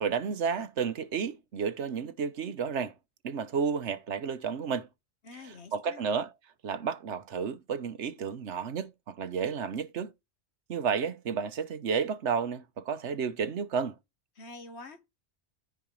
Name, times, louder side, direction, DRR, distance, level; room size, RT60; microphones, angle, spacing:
voice 1, 0.0-2.9 3.2-4.9 5.3-6.3 6.6-10.1 10.7-13.9, right 6 dB, 85° right, 1.3 m, -32 dB
voice 2, 5.2-6.1 14.4-15.1, left 3 dB, 70° left, 1.6 m, -47 dB
14.0 x 4.8 x 3.2 m
omnidirectional pair, 1.1 m